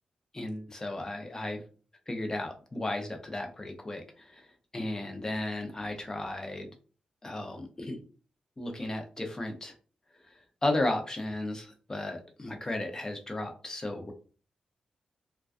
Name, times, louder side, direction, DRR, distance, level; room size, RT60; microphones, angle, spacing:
voice 1, 0.3-1.6 2.1-4.5 4.7-6.7 7.2-8.0 8.6-9.7 10.2-10.3 10.6-14.1, left 1 dB, 25° left, 4 dB, 0.6 m, -34 dB
2.2 x 2.2 x 2.5 m, 0.38 s
cardioid pair, 75°, 2 cm